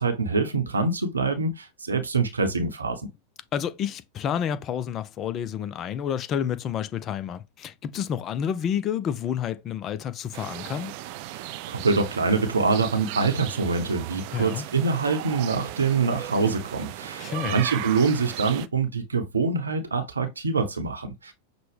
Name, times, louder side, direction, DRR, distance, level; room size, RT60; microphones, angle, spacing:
voice 1, 0.0-3.0 11.3-21.3, right 4 dB, 75° right, 0.8 m, -25 dB
voice 2, 3.5-10.9 14.3-14.6 17.2-17.6, left 9 dB, 30° left, 0.4 m, -29 dB
sound 1, 10.3-18.7, right 14 dB, 45° right, 0.3 m, -36 dB
5.9 x 2.2 x 3.3 m
figure-of-eight pair, 90°, 0 cm